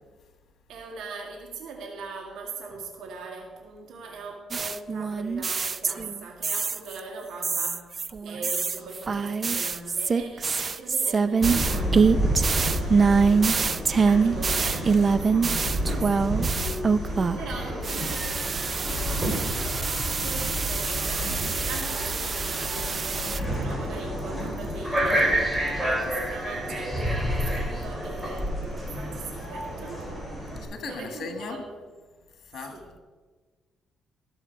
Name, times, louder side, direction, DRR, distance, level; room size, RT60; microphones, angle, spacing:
voice 1, 0.7-30.1 30.8-31.7 32.6-32.9, right 3 dB, 80° right, 2.0 m, -41 dB
sound 1, 4.5-7.0 7.4-17.5 17.8-23.4, right 5 dB, 40° right, 0.5 m, -25 dB
sound 2, 11.4-30.6, equal, 10° right, 3.3 m, -30 dB
sound 3, 17.3-24.4 24.9-26.1 26.4-26.5 26.9-28.0, left 1 dB, 5° left, 1.9 m, -36 dB
voice 2, 30.7-31.6 32.5-33.0, left 5 dB, 65° left, 1.7 m, -37 dB
14.0 x 7.3 x 4.6 m
cardioid pair, 90°, 0 cm